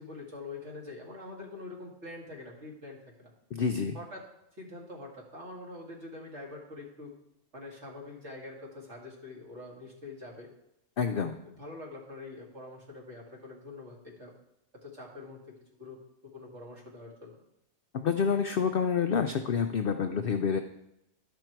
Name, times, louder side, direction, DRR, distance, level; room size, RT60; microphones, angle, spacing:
voice 1, 0.0-3.3 3.9-4.3 4.6-7.1 7.5-10.5 11.1-14.3 14.7-17.4, left 2 dB, 50° right, -2 dB, 2.2 m, -45 dB
voice 2, 3.5-4.0 11.0-11.3 17.9-20.6, left 6 dB, 70° left, 7 dB, 0.5 m, -28 dB
12.0 x 5.3 x 4.5 m, 0.84 s
omnidirectional pair, 1.5 m